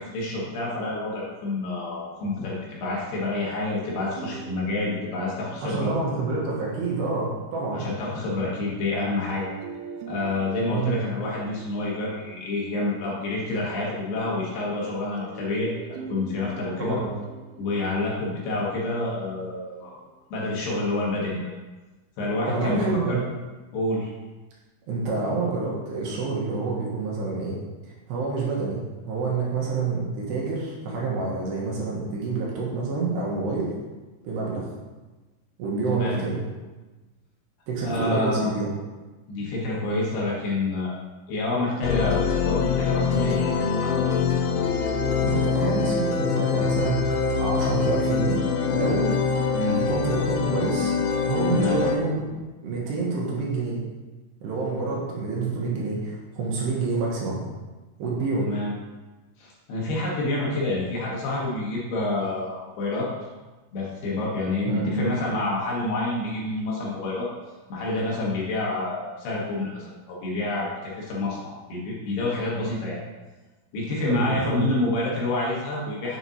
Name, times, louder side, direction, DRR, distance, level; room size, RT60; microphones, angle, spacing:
voice 1, 0.0-5.9 7.7-9.5 10.1-17.0 17.6-19.9 20.3-21.4 22.2-22.8 23.1-23.2 23.7-24.1 35.9-36.2 37.8-38.5 39.3-40.9 41.3-43.5 43.8-44.1 49.5-49.8 51.5-51.8 58.4-58.7 59.4-63.1 63.7-67.3 67.7-73.0 73.7-76.2, left 2 dB, 70° left, -5 dB, 2.9 m, -28 dB
sound 1, 3.9-7.7 9.3-13.8 15.2-20.4, right 5 dB, 90° right, 2.2 m, -43 dB
voice 2, 5.6-7.9 10.7-11.0 16.8-17.1 22.5-23.2 24.9-27.6 27.8-33.7 34.2-34.7 35.6-36.4 37.7-38.7 45.2-48.4 48.7-49.1 49.7-50.9 51.3-52.3 52.6-53.8 54.4-57.4 58.0-58.5 64.6-65.3 74.1-74.7, right 3 dB, 70° right, -4 dB, 3.0 m, -27 dB
sound 2, 41.8-52.0, left 6 dB, 90° left, 2.3 m, -24 dB
7.7 x 7.4 x 2.8 m, 1.2 s
omnidirectional pair, 5.5 m